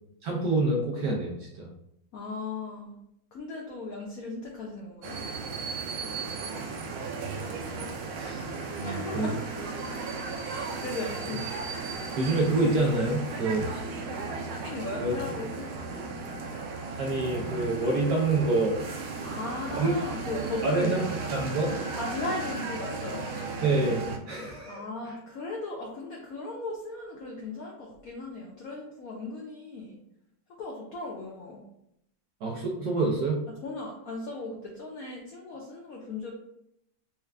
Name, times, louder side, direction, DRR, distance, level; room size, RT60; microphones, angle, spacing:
voice 1, 0.2-1.7 8.2-8.4 8.8-9.3 12.2-13.9 15.0-15.1 17.0-18.8 19.7-19.9 20.6-21.0 21.3-21.7 23.6-25.2 32.4-33.4, right 2 dB, 65° right, -2 dB, 1.0 m, -27 dB
voice 2, 2.1-2.9 3.3-5.2 8.8-9.4 10.8-11.5 14.6-15.7 19.2-21.0 22.0-23.3 24.7-30.0 30.6-31.6 33.6-36.3, left 2 dB, 75° left, -1 dB, 0.8 m, -37 dB
sound 1, 5.0-24.2, right 4 dB, 90° right, 1.5 m, -35 dB
4.4 x 2.4 x 3.3 m, 0.77 s
omnidirectional pair, 2.2 m